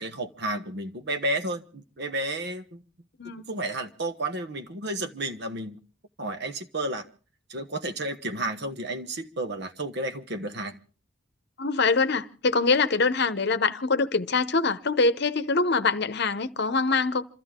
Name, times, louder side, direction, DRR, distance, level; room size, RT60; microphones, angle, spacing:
voice 1, 0.0-2.8 3.5-5.8 6.2-7.1 7.5-10.8, right 1 dB, 55° right, 1.3 m, -32 dB
voice 2, 11.6-17.3, left 4 dB, 55° left, 0.9 m, -24 dB
28.0 x 13.5 x 3.7 m
head